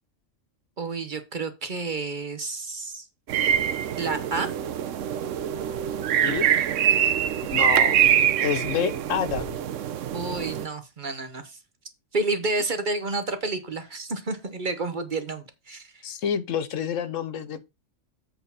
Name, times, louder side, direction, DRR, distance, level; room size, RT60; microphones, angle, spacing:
voice 1, 0.8-3.1 4.0-4.5 10.1-11.6 12.1-16.0, right 3 dB, 40° right, 0.9 m, -30 dB
sound 1, 3.3-10.6, right 9 dB, 70° right, 1.0 m, -24 dB
voice 2, 6.2-6.7 7.5-8.0 8.4-9.5 16.0-17.6, left 8 dB, 75° left, 1.1 m, -28 dB
7.9 x 4.3 x 5.5 m
omnidirectional pair, 1.4 m